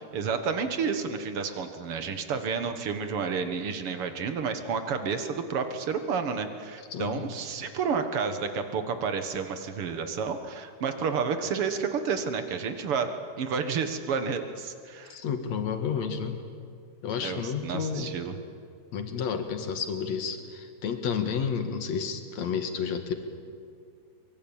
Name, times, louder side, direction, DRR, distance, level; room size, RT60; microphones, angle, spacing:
voice 1, 0.0-15.2 17.2-18.4, right 5 dB, 55° right, 8 dB, 2.1 m, -30 dB
voice 2, 6.9-7.3 15.1-16.4 17.0-18.1 18.9-23.1, left 6 dB, 60° left, 7 dB, 2.9 m, -31 dB
23.5 x 23.0 x 8.9 m, 2.3 s
omnidirectional pair, 3.6 m